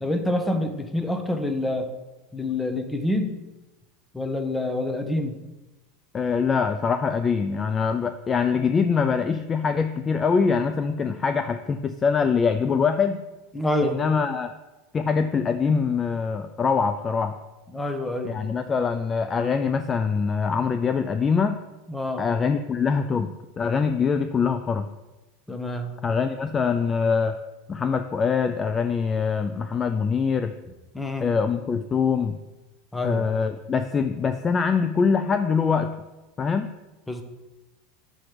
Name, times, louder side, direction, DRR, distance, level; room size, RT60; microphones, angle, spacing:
voice 1, 0.0-1.9 2.3-3.3 4.1-5.4 13.5-14.0 17.7-18.3 21.9-22.2 25.5-25.9 30.9-31.3 32.9-33.2 37.1-37.2, left 1 dB, 10° left, 6 dB, 0.8 m, -27 dB
voice 2, 6.1-13.2 13.8-14.5 14.9-17.3 18.2-21.6 22.2-24.9 26.0-27.4 27.7-30.5 31.2-32.4 33.0-35.9 36.4-36.7, left 5 dB, 25° left, 9 dB, 0.3 m, -23 dB
6.0 x 4.4 x 4.9 m, 1.1 s
supercardioid pair, 115°, 0 cm